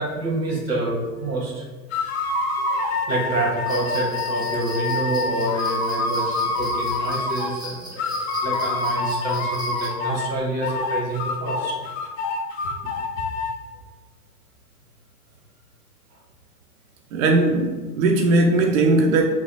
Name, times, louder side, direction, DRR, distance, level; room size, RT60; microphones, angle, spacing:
voice 1, 0.0-1.6 2.7-11.8, right 2 dB, 90° right, -2 dB, 1.4 m, -27 dB
sound 1, 1.9-7.6 8.0-10.3 10.6-13.5, left 3 dB, 40° left, 0.6 m, -26 dB
sound 2, 3.7-9.9, right 1 dB, 10° right, 0.6 m, -39 dB
voice 2, 17.1-19.2, right 2 dB, 55° right, 2 dB, 0.5 m, -18 dB
3.2 x 2.3 x 4.0 m, 1.3 s
hypercardioid pair, 110°, 49 cm